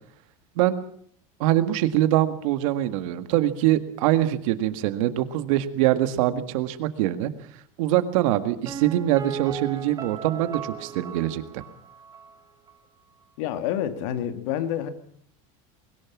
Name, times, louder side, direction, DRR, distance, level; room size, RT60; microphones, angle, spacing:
voice 1, 1.4-7.3 7.8-11.6, right 13 dB, 70° right, 1.8 m, -23 dB
Piano, 8.7-12.4 12.7-12.8, right 8 dB, 20° right, 1.8 m, -37 dB
voice 2, 13.4-14.9, left 10 dB, 70° left, 2.1 m, -28 dB
21.0 x 18.0 x 7.3 m
supercardioid pair, 155°, 18 cm